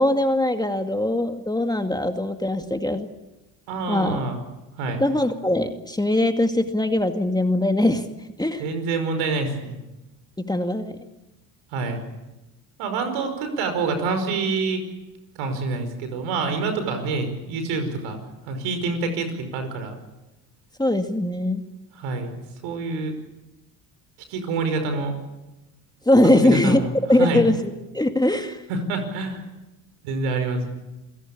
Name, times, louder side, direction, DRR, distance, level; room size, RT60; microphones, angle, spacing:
voice 1, 0.0-3.1 3.9-4.2 5.0-8.0 8.4-8.6 10.4-10.9 20.8-21.6 26.1-26.8 27.1-28.6, left 1 dB, 10° left, 6 dB, 2.2 m, -21 dB
voice 2, 3.7-4.4 4.8-5.0 8.6-9.8 11.7-12.0 12.8-14.8 15.4-18.2 18.5-20.0 22.0-22.4 22.6-23.1 24.3-25.1 26.3-26.9 27.2-27.5 28.7-29.4 30.0-30.7, right 3 dB, 70° right, 7 dB, 5.2 m, -26 dB
28.5 x 17.0 x 8.5 m, 1.0 s
hypercardioid pair, 65°, 48 cm